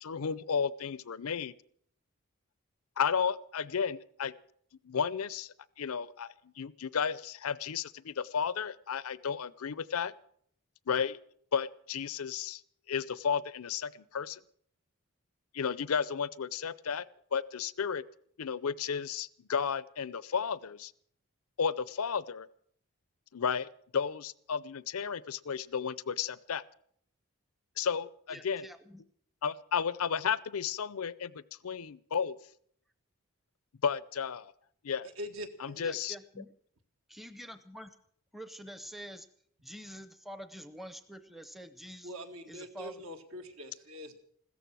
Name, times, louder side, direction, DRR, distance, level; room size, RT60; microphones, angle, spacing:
voice 1, 0.0-1.5 3.0-4.3 4.8-10.1 10.9-11.2 11.5-12.6 12.9-14.4 15.5-17.0 17.3-18.0 18.4-20.9 21.6-22.5 23.3-26.6 27.8-28.7 29.4-32.4 33.8-34.5 34.8-35.1 35.6-36.2, left 6 dB, 80° left, 19 dB, 0.6 m, -33 dB
voice 2, 28.3-29.0 35.8-36.5 37.1-38.0 38.3-39.3 39.6-42.1 42.5-43.0, equal, ahead, 11 dB, 0.7 m, -46 dB
voice 3, 35.2-35.8 42.0-44.2, equal, 70° right, 6 dB, 1.8 m, -43 dB
15.5 x 14.0 x 6.1 m, 0.64 s
head